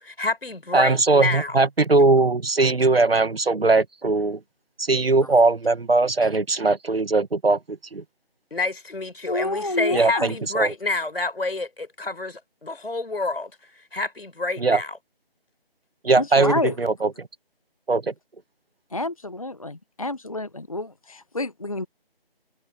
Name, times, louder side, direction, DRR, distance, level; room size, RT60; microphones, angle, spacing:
voice 1, 0.0-1.6 8.5-13.5 13.9-15.0, left 3 dB, 70° left, 5.2 m, -28 dB
voice 2, 0.7-4.4 4.8-8.0 9.9-10.7 14.6-14.8 16.0-17.3 17.9-18.1, right 3 dB, 70° right, 1.6 m, -20 dB
voice 3, 9.3-10.3 16.1-16.7 18.9-21.9, left 2 dB, 35° left, 0.9 m, -28 dB
figure-of-eight pair, 175°, 31 cm